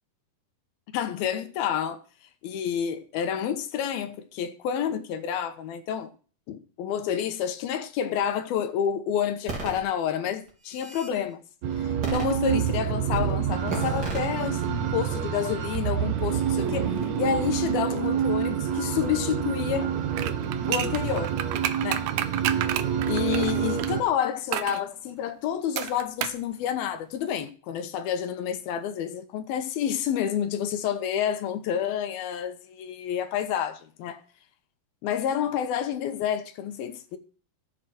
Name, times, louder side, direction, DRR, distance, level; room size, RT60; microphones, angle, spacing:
voice 1, 0.9-2.0 2.4-6.1 6.5-11.4 11.8-19.9 20.7-21.4 21.8-22.1 23.1-34.2 35.0-37.2, left 9 dB, 80° left, 2.9 m, -29 dB
sound 1, 9.5-9.8 10.5-11.1 12.0-12.8 13.1-13.3 13.7-14.3, right 2 dB, 25° right, 3.9 m, -33 dB
sound 2, 11.6-24.0, right 8 dB, 65° right, 2.0 m, -27 dB
sound 3, 20.1-23.9 24.5-24.8 25.8-26.4 26.7-26.8, right 11 dB, 80° right, 1.7 m, -30 dB
14.0 x 7.8 x 6.0 m
omnidirectional pair, 4.4 m